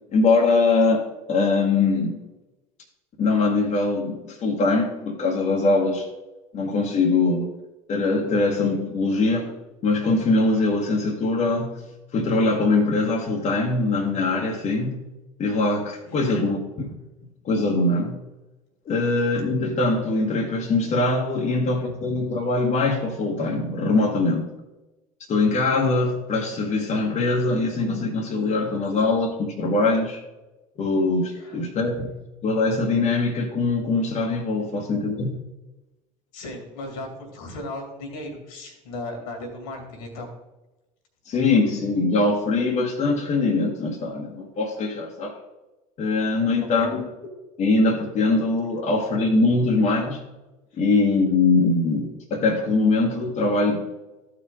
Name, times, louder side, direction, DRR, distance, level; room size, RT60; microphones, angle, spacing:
voice 1, 0.1-2.2 3.2-6.1 6.5-7.5 7.9-9.5 9.8-11.8 12.1-15.0 15.4-16.9 17.4-18.2 18.8-24.5 25.3-30.2 30.8-32.1 32.4-35.4 41.2-45.3 46.0-47.1 47.6-50.2 50.8-53.8, left 3 dB, 45° left, 0 dB, 1.5 m, -22 dB
voice 2, 16.0-16.4 31.3-31.7 36.3-40.3 46.7-46.9 50.7-50.8, left 2 dB, 70° left, 3 dB, 2.4 m, -36 dB
13.5 x 4.9 x 3.7 m, 1.0 s
hypercardioid pair, 70°, 18 cm